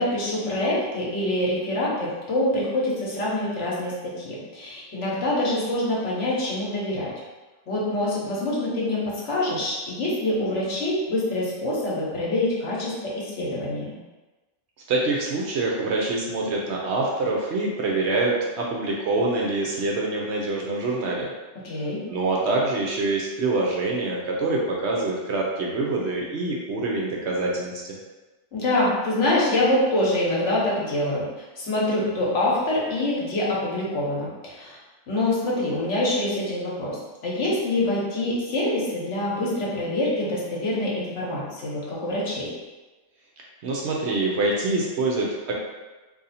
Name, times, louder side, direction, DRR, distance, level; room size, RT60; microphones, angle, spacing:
voice 1, 0.0-7.1 7.7-14.0 21.6-22.0 28.5-31.2 31.6-34.8 35.1-37.0 37.2-42.5, left 1 dB, 65° left, -5 dB, 1.2 m, -25 dB
voice 2, 14.9-21.3 22.1-27.8 43.6-45.5, right 2 dB, 65° right, -2 dB, 0.8 m, -25 dB
2.7 x 2.6 x 4.0 m, 1.2 s
omnidirectional pair, 1.4 m